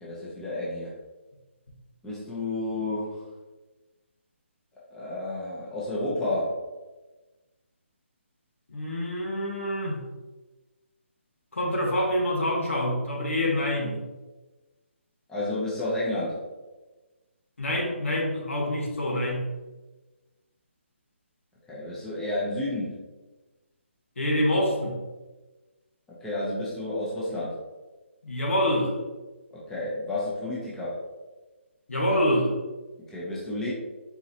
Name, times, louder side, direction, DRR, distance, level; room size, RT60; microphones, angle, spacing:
voice 1, 0.0-0.9 2.0-3.2 4.9-6.6 15.3-16.4 21.7-23.0 26.2-27.5 29.5-31.0 33.1-33.7, left 2 dB, 5° left, -8 dB, 0.8 m, -31 dB
voice 2, 8.7-10.0 11.5-14.0 17.6-19.5 24.2-25.0 28.2-28.9 31.9-32.5, left 1 dB, 85° left, -1 dB, 1.3 m, -26 dB
4.2 x 3.6 x 2.8 m, 1.2 s
hypercardioid pair, 160°, 7 cm